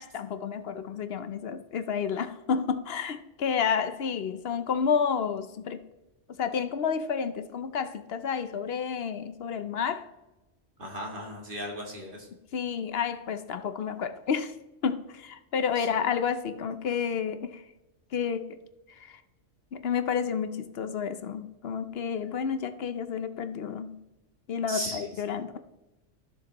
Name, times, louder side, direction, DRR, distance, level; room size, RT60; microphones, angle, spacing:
voice 1, 0.0-5.8 6.4-10.1 12.5-14.5 14.8-17.6 18.1-18.6 18.9-19.2 19.7-24.0 24.5-25.6, left 6 dB, 60° left, 10 dB, 0.8 m, -30 dB
voice 2, 10.8-12.3 15.8-15.9 24.7-25.1, equal, 45° right, 0 dB, 2.0 m, -36 dB
15.0 x 6.6 x 2.9 m, 1.0 s
omnidirectional pair, 1.3 m